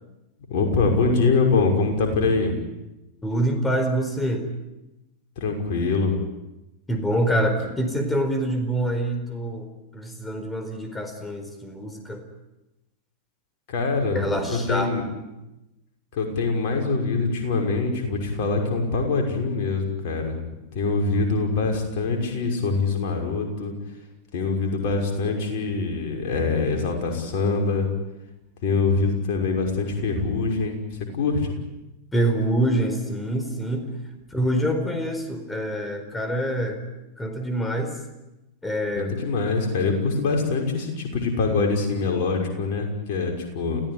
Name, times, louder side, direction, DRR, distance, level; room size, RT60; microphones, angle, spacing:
voice 1, 0.5-2.5 5.4-6.2 13.7-14.2 14.5-15.0 16.1-20.4 20.7-23.7 24.3-27.9 28.6-31.5 39.0-43.8, left 4 dB, 50° left, 3 dB, 6.0 m, -24 dB
voice 2, 3.2-4.5 6.9-12.2 14.1-14.9 32.1-33.9 34.3-36.9 37.2-38.0 38.6-39.1, right 1 dB, 10° left, 6 dB, 4.6 m, -26 dB
30.0 x 16.5 x 9.9 m, 0.99 s
figure-of-eight pair, 90°, 0 cm